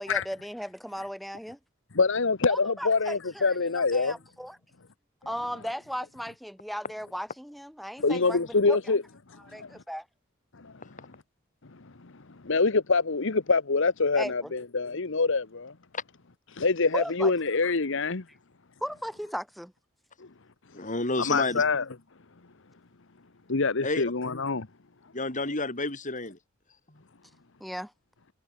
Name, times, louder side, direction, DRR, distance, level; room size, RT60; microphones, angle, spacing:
voice 1, 0.0-1.6 2.5-4.6 5.2-9.0 9.5-10.0 14.2-14.5 16.9-17.3 18.8-19.7 27.6-27.9, equal, ahead, 4.9 m, -36 dB
voice 2, 1.9-4.2 8.0-9.0 9.3-9.7 10.6-11.1 12.0-12.1 12.4-15.7 16.5-18.2 20.2-20.3 21.2-21.8 23.5-24.7, left 4 dB, 65° left, 1.2 m, -25 dB
voice 3, 20.7-21.6 23.8-24.0 25.1-26.4 26.9-27.0, left 2 dB, 40° left, 7.2 m, -30 dB
head